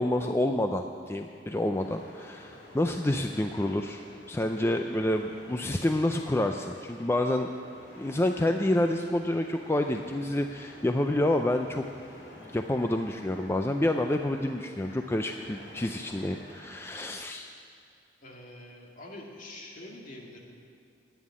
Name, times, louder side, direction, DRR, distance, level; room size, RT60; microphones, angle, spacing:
voice 1, 0.0-7.5 8.0-11.8 12.4-17.5, left 1 dB, 15° left, 5 dB, 0.4 m, -28 dB
sound 1, 1.7-17.1, left 1 dB, 80° left, 2.9 m, -50 dB
voice 2, 18.2-20.4, left 1 dB, 50° left, -1 dB, 2.2 m, -45 dB
11.0 x 9.4 x 9.8 m, 2.4 s
head